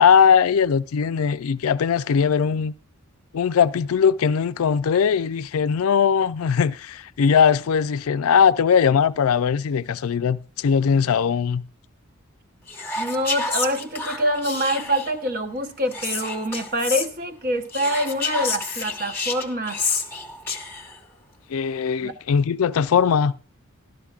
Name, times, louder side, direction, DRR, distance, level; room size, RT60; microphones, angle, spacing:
voice 1, 0.0-2.7 3.3-11.6 21.5-23.3, left 7 dB, 80° left, 0.4 m, -20 dB
Whispering, 12.7-15.2 15.9-17.1 17.7-21.0, left 4 dB, 10° left, 1.1 m, -29 dB
voice 2, 13.0-19.8 22.0-22.1, equal, 45° right, 0.9 m, -25 dB
12.5 x 12.5 x 2.4 m
head